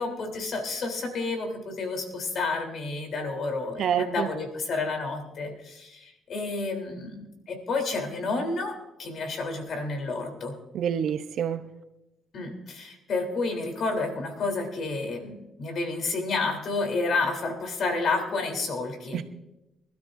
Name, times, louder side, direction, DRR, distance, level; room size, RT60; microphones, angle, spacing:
voice 1, 0.0-10.6 12.3-19.2, left 3 dB, 60° left, 3.5 m, -30 dB
voice 2, 3.8-4.3 10.7-11.7 19.1-19.2, right 8 dB, 70° right, 0.7 m, -27 dB
24.5 x 12.5 x 2.7 m
cardioid pair, 90°, 0 cm